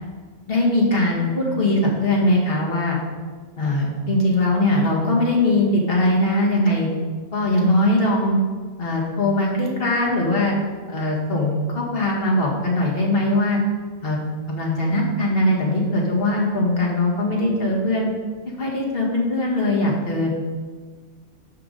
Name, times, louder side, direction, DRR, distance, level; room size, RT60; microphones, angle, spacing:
voice 1, 0.5-3.0 3.6-6.9 7.3-8.4 8.8-10.5 10.9-13.6 14.0-14.2 14.5-18.1 18.6-20.3, left 1 dB, 55° left, -3 dB, 1.8 m, -21 dB
9.4 x 5.8 x 3.9 m, 1.5 s
omnidirectional pair, 1.2 m